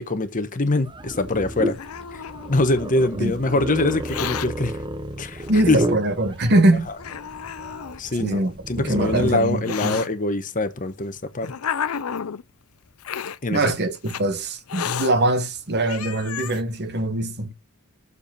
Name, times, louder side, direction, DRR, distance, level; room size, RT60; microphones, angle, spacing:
voice 1, 0.0-1.8 2.1-2.2 2.5-4.8 5.2-5.8 8.0-8.4 8.7-11.5 13.4-13.7, left 2 dB, 40° left, 1.0 m, -23 dB
sound 1, 0.8-9.3, right 1 dB, 20° right, 0.7 m, -32 dB
Hiss, 1.3-2.9 3.9-4.5 5.4-5.5 6.3-6.4 7.0-8.0 8.9-10.1 10.9-12.4 13.0-13.4 14.0-14.2 14.7-15.1 15.6-15.7 15.9-16.6, left 8 dB, 80° left, 0.6 m, -31 dB
voice 2, 5.5-6.9 8.2-10.0 13.5-17.5, right 1 dB, 50° right, 1.3 m, -22 dB
6.8 x 5.0 x 5.3 m
head